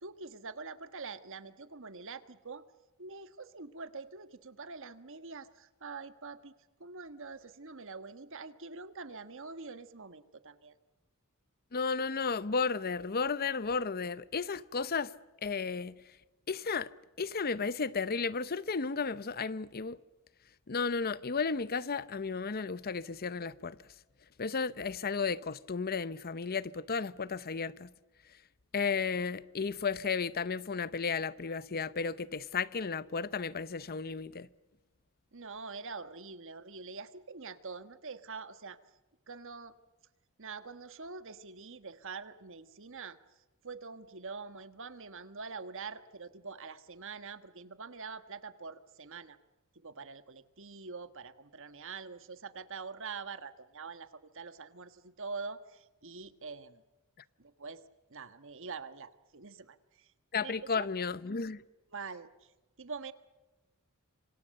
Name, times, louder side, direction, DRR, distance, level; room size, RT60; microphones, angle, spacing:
voice 1, 0.0-2.6 3.0-6.5 6.8-10.7 35.3-38.8 39.3-39.7 40.4-43.2 43.6-49.4 49.7-56.8 57.4-57.8 58.1-60.1 60.4-60.9 61.9-62.5 62.8-63.1, right 4 dB, 60° right, 1.5 m, -45 dB
voice 2, 11.7-15.1 15.4-16.0 16.5-16.9 17.2-20.0 20.7-23.8 24.4-27.9 28.7-34.5 60.3-61.6, left 5 dB, 45° left, 0.7 m, -33 dB
26.5 x 26.5 x 6.7 m
head